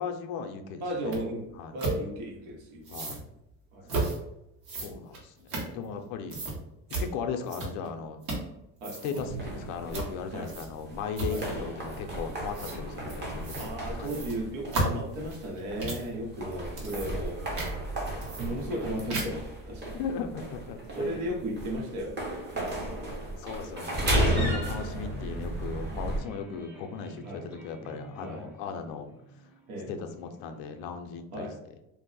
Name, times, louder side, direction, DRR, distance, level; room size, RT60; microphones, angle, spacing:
voice 1, 0.0-1.2 1.6-1.7 2.9-3.2 4.7-6.4 7.0-8.2 9.0-14.2 19.9-21.3 23.4-29.1 29.9-31.5, left 6 dB, 60° left, 6 dB, 0.5 m, -37 dB
voice 2, 0.8-1.5 1.7-3.2 3.7-3.9 8.8-9.0 10.3-10.5 11.3-11.5 13.6-17.4 18.3-20.0 20.9-23.1 24.8-25.3 27.2-27.5 28.2-28.4 29.7-29.9 31.3-31.5, right 1 dB, 85° right, -1 dB, 1.2 m, -36 dB
sound 1, 1.1-1.2 1.8-2.0 2.8-3.2 3.9-4.2 4.6-6.0 6.3-6.6 6.9-7.1 7.5-7.9 8.2-8.5 8.8-9.2 9.9-10.1 10.4-10.8 11.1-11.6 12.5-12.8 13.4-13.7 14.0-16.1 16.6-17.3 17.6-17.7 18.2-18.8 19.1-19.5, right 2 dB, 55° right, 1.3 m, -33 dB
sound 2, 9.2-26.2, right 1 dB, 25° right, 0.7 m, -34 dB
sound 3, 25.9-30.9, right 1 dB, 5° right, 0.4 m, -49 dB
2.6 x 2.1 x 3.9 m, 0.85 s
cardioid pair, 130°, 41 cm